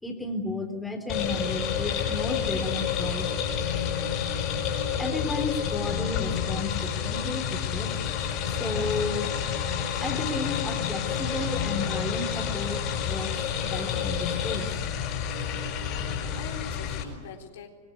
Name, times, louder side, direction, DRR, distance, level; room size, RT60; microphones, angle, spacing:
voice 1, 0.0-3.3 4.9-7.9 8.5-9.3 10.0-13.3 13.7-14.7 16.2-16.4, left 2 dB, 5° left, 4 dB, 3.9 m, -33 dB
sound 1, 1.1-17.0, left 8 dB, 40° left, 5.9 m, -29 dB
voice 2, 16.0-17.7, left 8 dB, 65° left, 1 dB, 3.9 m, -44 dB
24.5 x 22.5 x 9.6 m, 1.4 s
figure-of-eight pair, 90°, 0 cm